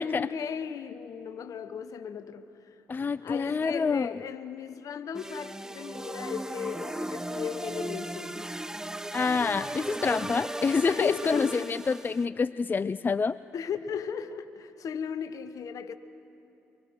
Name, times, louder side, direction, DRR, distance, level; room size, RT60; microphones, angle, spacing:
voice 1, 0.0-2.8 3.2-8.4 10.9-11.7 12.8-12.9 13.5-16.0, left 7 dB, 60° left, 1.0 m, -36 dB
voice 2, 2.9-4.1 9.1-13.3, left 5 dB, 30° left, 0.4 m, -27 dB
sound 1, 5.1-12.3, right 1 dB, 10° right, 0.8 m, -37 dB
24.0 x 23.5 x 4.7 m
hypercardioid pair, 45°, 7 cm